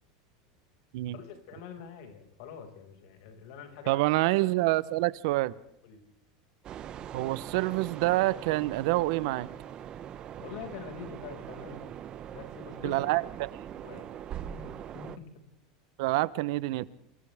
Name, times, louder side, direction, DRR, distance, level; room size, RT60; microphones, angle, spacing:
voice 1, 1.1-4.0 5.8-6.0 10.4-11.9 12.3-13.1 13.4-13.5 13.8-14.1 14.5-15.2, left 7 dB, 60° left, 5 dB, 5.8 m, -45 dB
voice 2, 3.9-5.5 7.1-9.5 12.8-13.5 16.0-16.9, right 19 dB, 65° right, 18 dB, 0.9 m, -27 dB
sound 1, 6.6-15.2, right 10 dB, 30° right, 1.0 m, -42 dB
29.0 x 26.5 x 3.6 m, 0.74 s
supercardioid pair, 150°, 3 cm